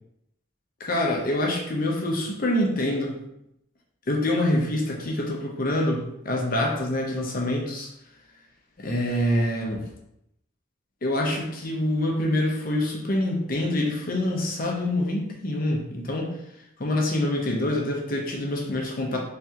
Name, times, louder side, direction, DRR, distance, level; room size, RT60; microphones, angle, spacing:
voice 1, 0.8-3.2 4.1-7.9 8.8-9.8 11.0-16.3 16.8-19.2, left 1 dB, 40° left, 0 dB, 0.7 m, -26 dB
3.3 x 2.9 x 3.6 m, 0.79 s
head